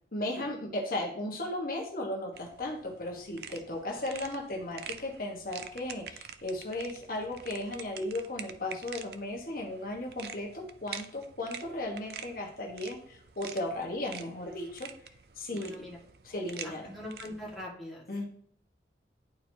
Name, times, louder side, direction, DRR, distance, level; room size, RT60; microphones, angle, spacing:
voice 1, 0.1-15.7 16.2-16.9 18.1-18.3, left 1 dB, 50° left, 1 dB, 1.3 m, -36 dB
sound 1, 2.3-17.7, right 7 dB, 60° right, 0.5 m, -47 dB
voice 2, 15.5-16.0 16.6-18.3, left 1 dB, ahead, -5 dB, 1.8 m, -43 dB
11.0 x 4.5 x 2.8 m, 0.63 s
head